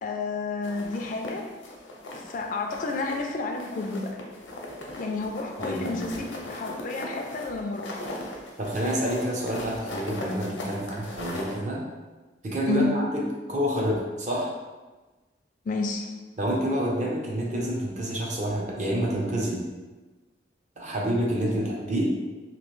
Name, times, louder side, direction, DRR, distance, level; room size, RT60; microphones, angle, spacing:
voice 1, 0.0-1.5 2.1-4.2 5.0-8.1 12.7-13.0 15.7-16.1, left 3 dB, 45° left, 2 dB, 0.3 m, -31 dB
sound 1, 0.6-2.4 2.7-3.3 3.6-11.6, left 1 dB, 90° left, 0.6 m, -39 dB
voice 2, 5.6-6.2 8.6-11.8 12.4-13.2 13.5-14.5 16.4-19.6 20.8-22.1, equal, 40° right, -3 dB, 0.6 m, -28 dB
3.0 x 2.6 x 3.0 m, 1.2 s
head